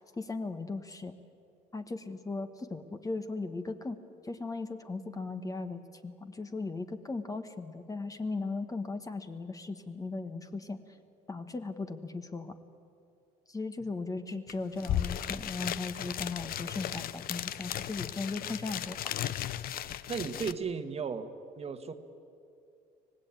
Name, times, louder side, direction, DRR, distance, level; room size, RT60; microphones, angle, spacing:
voice 1, 0.1-1.2 1.7-4.0 4.2-10.8 11.3-12.6 13.5-19.1, left 3 dB, 20° left, 8 dB, 1.3 m, -37 dB
sound 1, 14.5-14.6 14.8-20.5, left 11 dB, 60° left, 0.7 m, -36 dB
voice 2, 20.1-21.9, right 6 dB, 40° right, 9 dB, 1.4 m, -36 dB
25.0 x 18.5 x 9.0 m, 2.5 s
cardioid pair, 110°, 17 cm